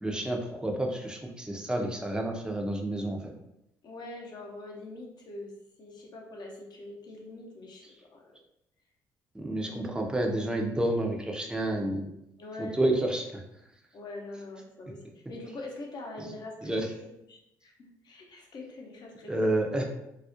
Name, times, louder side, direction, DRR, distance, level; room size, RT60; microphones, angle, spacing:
voice 1, 0.0-3.3 9.3-12.1 12.6-13.4 16.2-16.3 16.6-16.9 19.3-19.9, right 1 dB, 10° right, 1 dB, 0.5 m, -30 dB
voice 2, 3.8-5.5 5.8-8.4 9.8-10.0 12.4-12.8 13.9-16.8 17.3-19.3, left 2 dB, 50° left, -1 dB, 0.7 m, -43 dB
2.4 x 2.0 x 2.6 m, 0.85 s
hypercardioid pair, 55°, 9 cm